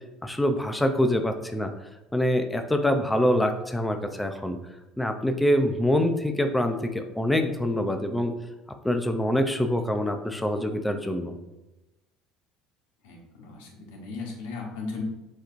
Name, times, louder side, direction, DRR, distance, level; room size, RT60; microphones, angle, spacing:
voice 1, 0.2-1.7 2.1-4.6 5.0-8.3 8.8-11.4, left 1 dB, 5° left, 6 dB, 0.5 m, -25 dB
voice 2, 13.0-15.0, left 4 dB, 90° left, 0 dB, 1.1 m, -37 dB
6.5 x 2.9 x 2.5 m, 0.99 s
supercardioid pair, 100°, 0 cm